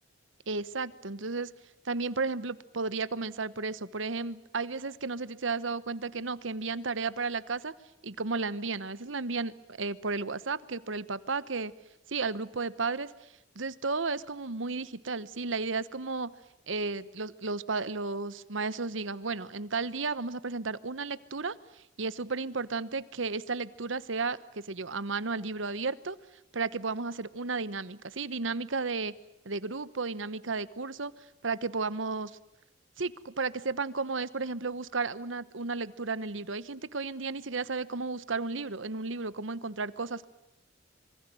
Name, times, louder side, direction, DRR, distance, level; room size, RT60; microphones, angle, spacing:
voice 1, 0.5-1.5 1.8-7.7 8.0-11.7 12.1-13.1 13.5-16.3 16.7-21.6 22.0-26.2 26.5-29.1 29.4-31.1 31.4-32.3 33.0-40.3, right 4 dB, 75° right, 16 dB, 1.1 m, -33 dB
26.5 x 24.0 x 7.8 m, 0.86 s
head